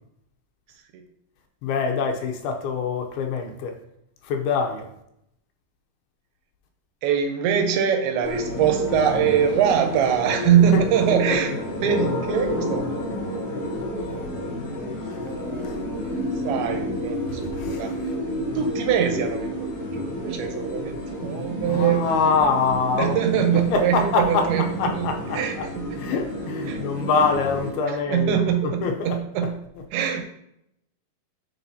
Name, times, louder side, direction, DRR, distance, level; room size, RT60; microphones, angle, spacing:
voice 1, 1.6-3.8 4.2-4.9 10.7-10.9 11.3-11.4 15.6-15.8 17.4-17.9 21.7-23.2 23.5-25.6 26.0-29.5, left 5 dB, 80° left, 3 dB, 2.5 m, -25 dB
voice 2, 7.0-11.5 11.8-12.8 15.2-16.0 16.4-17.9 18.6-22.1 23.0-25.9 26.7-26.8 27.9-29.5 29.9-30.2, right 8 dB, 80° right, 5 dB, 2.6 m, -23 dB
sound 1, 8.2-27.7, equal, 50° left, 2.5 m, -30 dB
10.0 x 3.9 x 2.7 m, 0.76 s
omnidirectional pair, 4.6 m